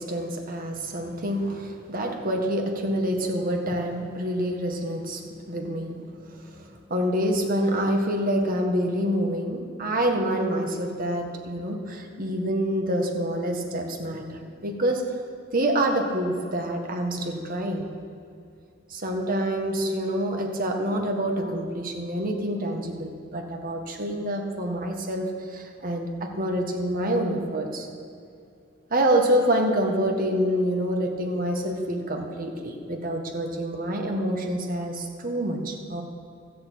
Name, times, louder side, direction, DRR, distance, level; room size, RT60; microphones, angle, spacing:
voice 1, 0.0-15.1 15.5-17.9 18.9-27.9 28.9-36.0, right 1 dB, 45° right, 2 dB, 1.7 m, -27 dB
14.5 x 6.8 x 8.5 m, 2.5 s
head